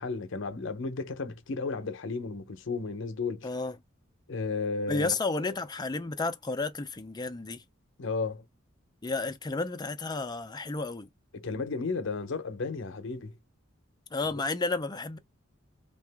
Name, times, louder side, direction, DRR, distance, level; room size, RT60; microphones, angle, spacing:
voice 1, 0.0-3.5 4.3-5.1 8.0-8.4 11.3-13.3 14.3-14.4, left 4 dB, 65° left, 0.7 m, -33 dB
voice 2, 3.4-3.8 4.9-7.6 9.0-11.1 14.1-15.2, left 3 dB, 20° left, 0.5 m, -32 dB
2.9 x 2.3 x 3.3 m
head